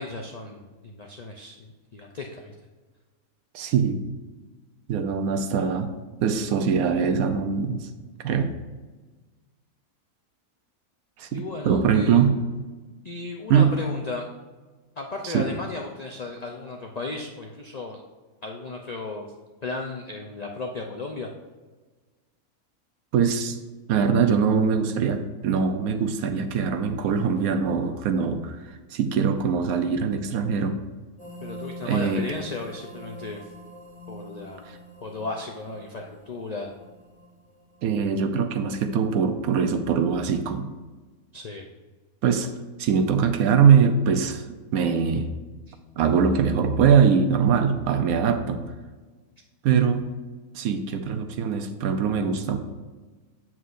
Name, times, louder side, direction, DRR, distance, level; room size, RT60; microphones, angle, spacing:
voice 1, 0.0-2.5 11.3-12.2 13.0-14.3 15.0-18.0 18.4-19.3 19.6-21.3 31.4-33.4 34.1-34.6 35.0-36.7 41.3-41.7, left 3 dB, 70° left, 1 dB, 0.4 m, -35 dB
voice 2, 3.5-4.0 4.9-5.9 6.2-7.9 8.2-8.5 11.2-12.4 13.5-13.8 15.2-15.5 23.1-23.6 23.9-28.6 28.9-30.8 31.9-32.2 37.8-40.7 42.2-42.5 42.8-45.3 46.0-48.7 49.6-50.1 50.5-52.6, right 6 dB, 75° right, 8 dB, 1.1 m, -22 dB
sound 1, 31.2-38.9, equal, 5° left, 1.4 m, -45 dB
8.1 x 7.4 x 2.5 m, 1.3 s
omnidirectional pair, 1.5 m